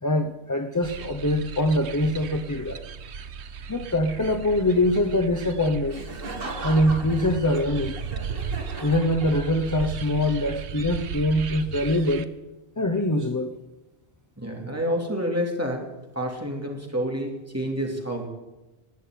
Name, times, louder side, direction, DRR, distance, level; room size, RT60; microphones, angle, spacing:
voice 1, 0.0-2.8 3.7-6.0 6.6-8.0 8.8-12.3 12.8-13.5, left 1 dB, 20° left, 6 dB, 0.8 m, -23 dB
sound 1, 0.8-12.2, right 6 dB, 85° right, 1.1 m, -36 dB
Laughter, 5.9-9.8, right 2 dB, 55° right, 2.1 m, -38 dB
voice 2, 14.4-15.9 16.1-18.3, equal, 15° right, 0 dB, 2.8 m, -28 dB
19.0 x 6.5 x 9.4 m, 1.1 s
omnidirectional pair, 1.1 m